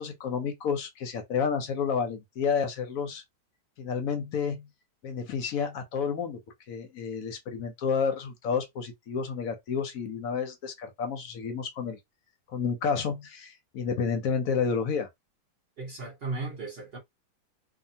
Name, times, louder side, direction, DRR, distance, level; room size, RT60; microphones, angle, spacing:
voice 1, 0.0-3.2 3.8-4.7 5.0-6.4 6.7-12.0 12.5-15.1, left 6 dB, 65° left, 0.9 m, -30 dB
voice 2, 15.8-17.0, right 3 dB, 50° right, 0.7 m, -36 dB
2.7 x 2.3 x 2.7 m
omnidirectional pair, 1.8 m